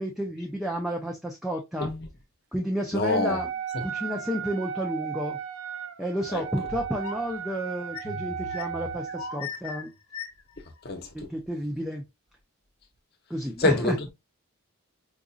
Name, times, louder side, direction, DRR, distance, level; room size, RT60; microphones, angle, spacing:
voice 1, 0.0-1.9 2.5-3.5 3.8-5.4 6.0-9.9 11.1-12.0 13.3-14.0, equal, ahead, 0.4 m, -31 dB
voice 2, 2.9-3.4 6.3-6.4 10.8-11.1 13.6-14.1, left 2 dB, 45° left, 0.8 m, -25 dB
Wind instrument woodwind instrument, 3.0-9.5, right 8 dB, 65° right, 0.5 m, -35 dB
sound 1, 6.7-7.3 7.9-10.6, left 6 dB, 75° left, 0.8 m, -39 dB
4.8 x 2.6 x 2.3 m
head